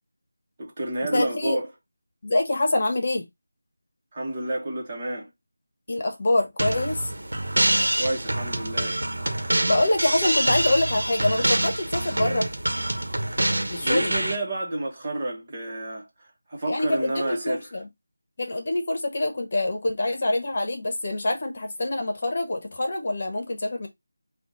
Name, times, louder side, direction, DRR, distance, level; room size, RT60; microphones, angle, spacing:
voice 1, 0.6-1.7 4.1-5.3 8.0-9.0 13.8-17.7, right 1 dB, 30° right, 1.2 m, -30 dB
voice 2, 1.1-1.6 2.2-3.3 5.9-7.1 9.6-12.5 13.7-14.1 16.7-17.9 18.4-23.9, left 2 dB, 45° left, 1.1 m, -25 dB
sound 1, 6.6-14.4, right 1 dB, 80° right, 1.1 m, -25 dB
4.2 x 2.5 x 4.0 m
figure-of-eight pair, 170°, 0 cm